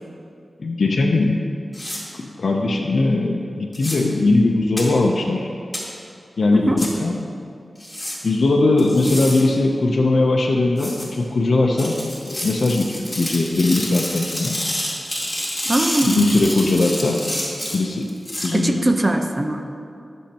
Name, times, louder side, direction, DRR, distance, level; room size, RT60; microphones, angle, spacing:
voice 1, 0.6-1.4 2.2-5.5 6.4-7.2 8.2-12.0 12.2-14.6 16.0-17.2 17.7-18.1 18.4-18.8 19.1-19.2, left 2 dB, 75° left, 0 dB, 0.6 m, -19 dB
sound 1, 1.7-2.0 3.7-4.0 4.8-4.9 5.7-5.8 6.8-6.9 7.8-8.2 8.8-9.4 10.8-11.0 11.8-18.5, left 1 dB, 15° left, 2.2 m, -28 dB
voice 2, 15.7-16.3 18.5-19.6, right 1 dB, 30° right, 5 dB, 0.7 m, -20 dB
13.0 x 6.4 x 2.9 m, 2.4 s
cardioid pair, 55°, 0 cm